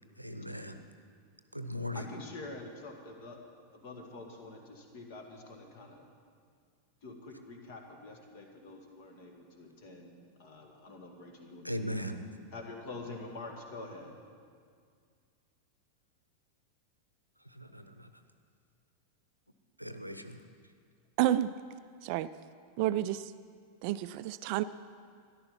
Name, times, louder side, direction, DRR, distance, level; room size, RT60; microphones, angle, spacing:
voice 1, 0.2-0.8 1.5-2.0 11.6-12.2 17.6-18.1 19.8-20.4, equal, 90° right, 9 dB, 0.7 m, -38 dB
voice 2, 1.9-3.4 3.7-6.0 7.0-10.1 10.4-11.9 12.5-14.1, left 2 dB, 50° left, 3 dB, 2.0 m, -46 dB
voice 3, 21.2-21.5 22.0-22.3 22.8-23.3 23.8-24.6, right 13 dB, 45° right, 14 dB, 0.3 m, -30 dB
13.5 x 11.0 x 5.7 m, 2.1 s
figure-of-eight pair, 90°, 0 cm